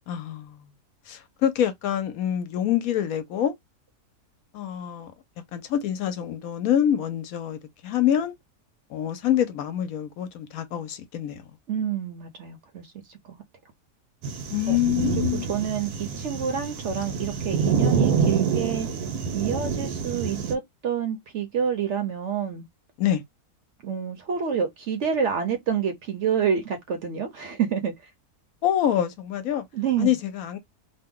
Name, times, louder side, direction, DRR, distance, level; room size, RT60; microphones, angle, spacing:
voice 1, 0.1-0.7 1.1-3.5 4.5-5.1 5.5-8.3 8.9-11.4 14.5-15.5 23.0-23.2 28.6-29.6 30.0-30.6, left 10 dB, 70° left, 1.0 m, -26 dB
voice 2, 11.7-12.9 13.3-13.4 14.7-14.8 15.2-15.3 15.5-18.9 19.3-22.6 23.8-27.9 29.7-30.2, right 7 dB, 60° right, 0.8 m, -28 dB
sound 1, 14.2-20.5, right 6 dB, 85° right, 1.3 m, -27 dB
2.8 x 2.2 x 3.6 m
omnidirectional pair, 1.6 m